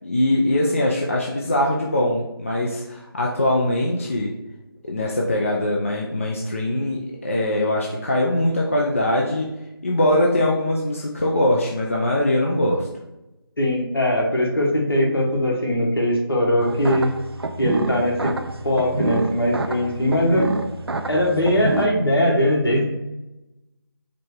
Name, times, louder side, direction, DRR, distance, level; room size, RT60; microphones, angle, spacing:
voice 1, 0.0-4.3 4.8-9.5 9.8-12.9, left 1 dB, 35° left, -2 dB, 0.4 m, -22 dB
voice 2, 13.6-17.1 17.6-18.3 18.6-20.5 21.1-22.8, left 1 dB, 70° left, -2 dB, 1.5 m, -20 dB
sound 1, 16.6-21.9, right 2 dB, 75° right, 0.5 m, -27 dB
4.7 x 2.3 x 4.6 m, 0.96 s
figure-of-eight pair, 165°, 13 cm